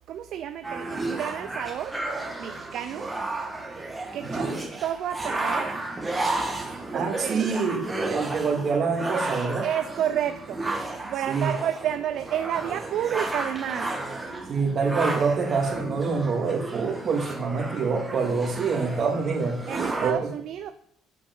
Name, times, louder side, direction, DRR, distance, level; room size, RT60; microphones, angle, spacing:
voice 1, 0.1-2.0 2.4-3.1 4.1-4.5 4.8-5.7 6.9-7.4 9.6-10.6 11.1-13.9 19.7-20.7, right 10 dB, 60° right, 9 dB, 0.5 m, -30 dB
sound 1, 0.6-20.1, right 2 dB, 15° right, 2.0 m, -32 dB
voice 2, 6.9-9.7 11.0-11.6 14.5-19.6 20.0-20.3, right 5 dB, 45° right, 2 dB, 2.4 m, -26 dB
8.4 x 7.0 x 5.4 m, 0.68 s
cardioid pair, 105°, 0 cm